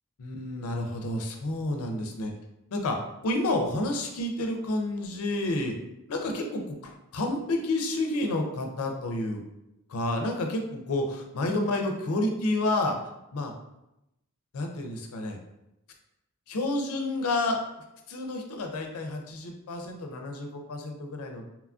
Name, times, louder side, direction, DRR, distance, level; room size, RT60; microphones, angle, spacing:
voice 1, 0.2-2.3 2.7-3.0 3.2-5.8 6.1-9.4 9.9-13.0 13.3-13.5 14.5-15.4 16.5-17.6 18.1-21.5, left 2 dB, 80° left, 3 dB, 0.4 m, -30 dB
2.9 x 2.4 x 2.3 m, 0.87 s
head